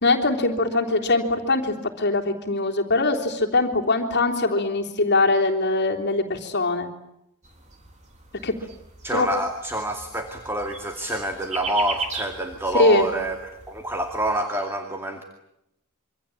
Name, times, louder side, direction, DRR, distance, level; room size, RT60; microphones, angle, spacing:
voice 1, 0.0-6.9 8.4-8.5 9.1-9.3 12.7-13.1, left 2 dB, 50° left, 2 dB, 3.5 m, -22 dB
sound 1, 7.4-14.4, right 4 dB, 30° right, 3.8 m, -38 dB
voice 2, 9.0-15.2, right 1 dB, 10° right, 4 dB, 2.4 m, -27 dB
27.0 x 25.0 x 8.8 m, 0.83 s
head